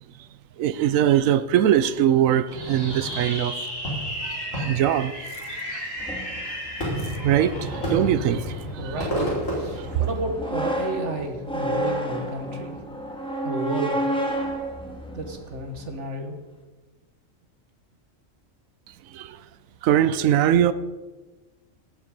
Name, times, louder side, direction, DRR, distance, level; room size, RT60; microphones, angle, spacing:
voice 1, 0.6-3.7 4.2-5.9 6.2-6.6 7.0-9.1 9.7-10.0 18.9-19.4 19.8-20.7, right 10 dB, 80° right, 1.0 m, -23 dB
Fireworks, 2.5-10.6, equal, 70° left, 5.2 m, -31 dB
sound 1, 6.0-15.9, equal, 5° left, 1.8 m, -31 dB
voice 2, 8.8-12.8 13.4-14.1 15.1-16.4, right 2 dB, 60° right, 1.9 m, -32 dB
18.0 x 8.2 x 5.3 m
omnidirectional pair, 1.4 m